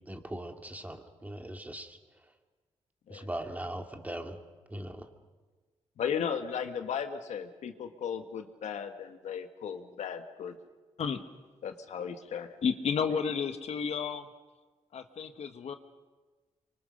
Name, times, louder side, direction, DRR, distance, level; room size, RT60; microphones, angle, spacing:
voice 1, 0.1-2.0 3.1-4.4 4.7-5.1, right 1 dB, 15° right, 4 dB, 2.3 m, -40 dB
voice 2, 6.0-10.6 11.6-12.6 13.1-13.2, left 7 dB, 85° left, 6 dB, 1.6 m, -36 dB
voice 3, 12.6-14.3 14.9-15.8, left 6 dB, 65° left, 8 dB, 1.4 m, -31 dB
25.0 x 24.0 x 6.5 m, 1.3 s
cardioid pair, 90°, 11 cm